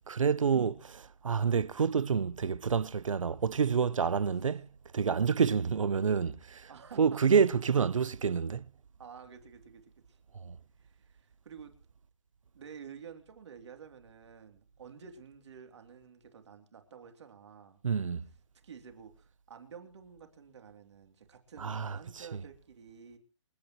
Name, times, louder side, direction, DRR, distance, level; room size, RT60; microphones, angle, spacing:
voice 1, 0.1-0.7 1.2-4.6 4.9-6.7 7.0-8.7 10.3-10.6 17.8-18.2 21.6-22.4, right 6 dB, 85° right, 0.8 m, -28 dB
voice 2, 6.7-7.2 7.7-7.9 9.0-10.2 10.8-11.7 12.5-17.8 18.6-23.2, right 7 dB, 60° right, 3.1 m, -50 dB
28.0 x 9.4 x 3.1 m
hypercardioid pair, 155°, 16 cm